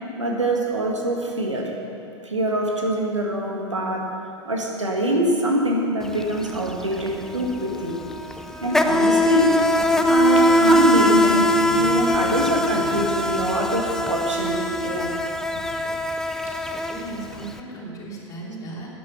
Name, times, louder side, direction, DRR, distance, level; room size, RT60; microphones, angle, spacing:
voice 1, 0.2-1.7 2.2-8.0 8.6-9.6 10.1-11.5 11.7-15.1, right 1 dB, 80° right, 0 dB, 1.9 m, -24 dB
Insect, 6.0-6.2 6.5-17.5, left 1 dB, 5° left, 0.5 m, -21 dB
sound 1, 9.3-13.9, left 3 dB, 60° left, 0.9 m, -36 dB
voice 2, 16.4-18.9, right 2 dB, 20° left, -5 dB, 3.1 m, -37 dB
11.5 x 9.7 x 5.9 m, 2.7 s
figure-of-eight pair, 95°, 15 cm